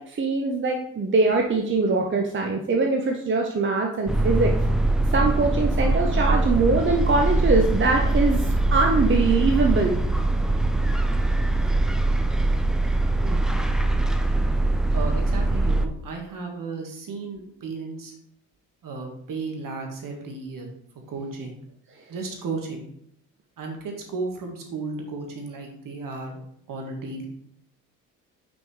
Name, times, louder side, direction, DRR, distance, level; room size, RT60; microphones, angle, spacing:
voice 1, 0.0-4.5 5.1-10.0, right 3 dB, 30° right, 1 dB, 0.9 m, -22 dB
sound 1, 4.1-15.9, right 2 dB, ahead, 0.4 m, -22 dB
voice 2, 14.9-18.1 18.8-20.7 21.1-21.6 22.1-22.9 23.6-26.4 26.7-27.3, right 3 dB, 50° right, 2 dB, 1.8 m, -34 dB
6.0 x 5.2 x 3.3 m, 0.70 s
hypercardioid pair, 60°, 41 cm